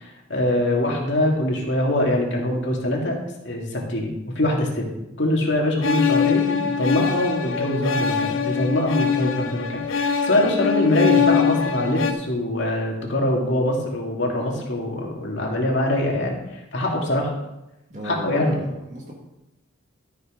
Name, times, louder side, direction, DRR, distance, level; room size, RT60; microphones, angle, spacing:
voice 1, 0.0-3.2 3.4-4.1 4.3-4.9 5.2-17.3 18.0-18.5, left 1 dB, 60° left, -1 dB, 2.4 m, -23 dB
sound 1, 5.8-12.1, left 7 dB, 75° left, 0.8 m, -23 dB
voice 2, 17.9-19.1, equal, 35° right, -2 dB, 1.8 m, -34 dB
13.0 x 6.3 x 5.1 m, 0.93 s
head